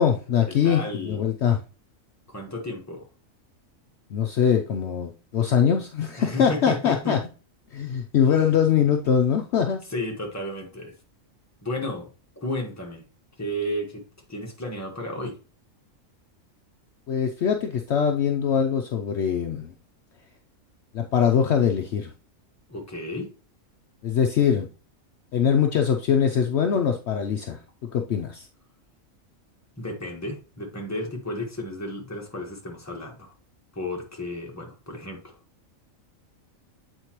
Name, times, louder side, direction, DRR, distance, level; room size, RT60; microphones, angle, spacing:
voice 1, 0.0-1.6 4.1-7.2 7.7-9.8 17.1-19.7 20.9-22.1 24.0-24.7 25.3-27.6 27.9-28.5, left 8 dB, 65° left, 4 dB, 0.8 m, -22 dB
voice 2, 0.6-1.2 2.3-3.1 6.2-7.2 8.2-8.5 9.9-10.9 11.6-12.1 12.4-13.0 13.4-14.0 14.3-15.4 22.7-23.3 29.8-33.3 33.7-35.4, left 1 dB, 15° left, 0 dB, 1.3 m, -33 dB
8.1 x 4.4 x 3.0 m, 0.35 s
omnidirectional pair, 1.4 m